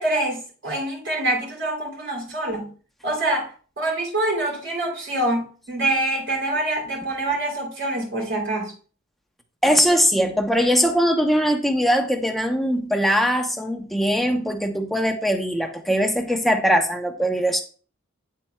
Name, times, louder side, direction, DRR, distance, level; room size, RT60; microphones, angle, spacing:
voice 1, 0.0-2.7 3.0-3.5 3.8-8.7, right 1 dB, 65° right, 3.2 m, -25 dB
voice 2, 9.6-17.6, equal, ahead, 0.9 m, -21 dB
8.9 x 7.4 x 2.3 m
head